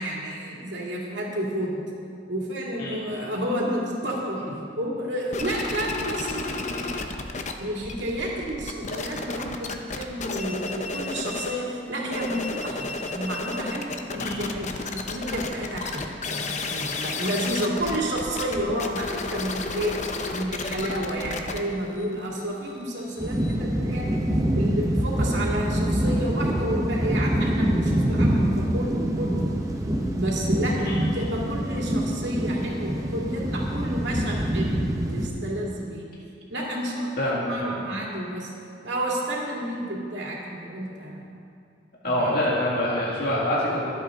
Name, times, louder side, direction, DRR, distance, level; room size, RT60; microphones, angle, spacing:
voice 1, 0.0-1.8 2.3-4.4 4.8-7.2 7.6-14.7 14.9-19.9 20.3-24.2 24.5-29.5 30.1-34.8 35.1-36.1 36.5-38.5 38.8-41.2 42.0-42.3, right 1 dB, 75° right, -3 dB, 2.5 m, -30 dB
sound 1, 5.3-7.5 7.8-11.6 12.0-23.6, left 3 dB, 40° left, 0.8 m, -32 dB
voice 2, 14.2-14.5 30.8-31.0 37.2-37.7 42.0-43.9, left 1 dB, 55° left, -6 dB, 2.1 m, -26 dB
sound 2, 23.2-35.3, right 1 dB, 20° right, 1.0 m, -25 dB
23.0 x 8.2 x 3.8 m, 2.5 s
head